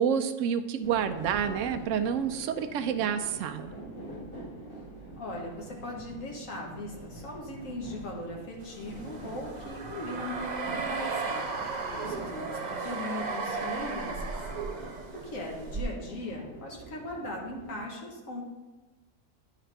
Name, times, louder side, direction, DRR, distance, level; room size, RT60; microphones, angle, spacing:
voice 1, 0.0-3.7, right 8 dB, 70° right, 8 dB, 0.9 m, -28 dB
sound 1, 0.8-17.8, right 1 dB, 10° left, 2.5 m, -45 dB
voice 2, 5.2-11.6 11.9-14.4 14.8-18.4, left 1 dB, 75° left, -1 dB, 1.7 m, -39 dB
sound 2, 8.7-15.8, right 4 dB, 45° right, 0.6 m, -35 dB
10.0 x 4.8 x 3.4 m, 1.2 s
omnidirectional pair, 1.4 m